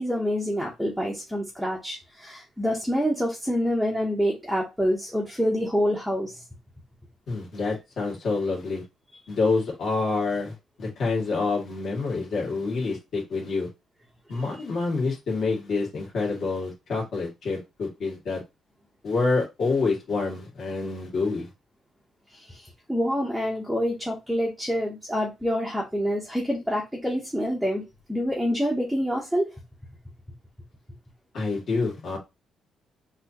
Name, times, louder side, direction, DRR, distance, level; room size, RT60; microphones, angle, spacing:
voice 1, 0.0-6.4 22.3-27.8 28.1-29.5, equal, ahead, -2 dB, 0.9 m, -27 dB
voice 2, 7.3-8.8 9.3-13.7 14.3-18.4 19.0-21.5 31.3-32.2, left 3 dB, 45° left, -2 dB, 2.0 m, -27 dB
6.0 x 2.8 x 2.9 m, 0.23 s
cardioid pair, 170°, 0 cm